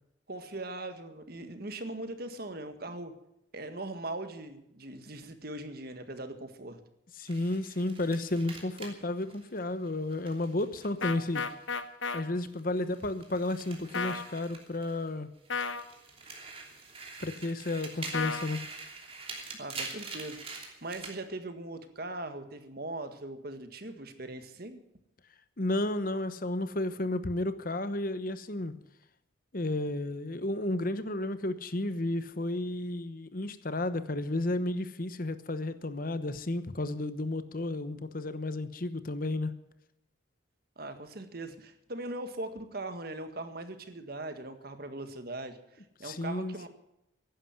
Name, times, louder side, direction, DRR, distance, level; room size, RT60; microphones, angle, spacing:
voice 1, 0.3-3.1 3.5-6.8 19.5-24.8 40.8-46.7, right 2 dB, 50° right, 8 dB, 1.8 m, -40 dB
voice 2, 7.2-11.4 12.1-15.3 17.2-18.6 25.6-28.7 29.5-39.5 46.0-46.7, left 2 dB, 45° left, 12 dB, 1.0 m, -32 dB
sound 1, 7.2-11.8 12.1-15.1 15.4-21.2, right 4 dB, 30° right, 3.0 m, -45 dB
sound 2, 11.0-12.2 13.9-14.2 15.5-15.8 18.1-18.5, left 5 dB, 75° left, 1.3 m, -32 dB
15.5 x 11.5 x 7.6 m, 0.82 s
head